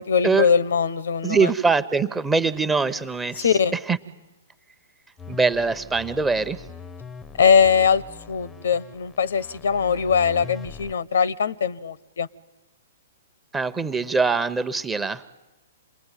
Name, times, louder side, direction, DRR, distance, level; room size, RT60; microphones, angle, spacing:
voice 1, 0.0-1.5 3.4-3.7 7.4-8.0 8.3-12.3, left 6 dB, 70° left, 22 dB, 0.9 m, -21 dB
voice 2, 1.2-3.5 3.9-4.0 5.3-6.6 13.5-15.2, right 4 dB, 10° right, 11 dB, 1.0 m, -23 dB
sound 1, 5.2-10.9, left 5 dB, 15° left, 0.8 m, -41 dB
27.5 x 20.0 x 9.2 m, 1.1 s
hypercardioid pair, 120°, 0 cm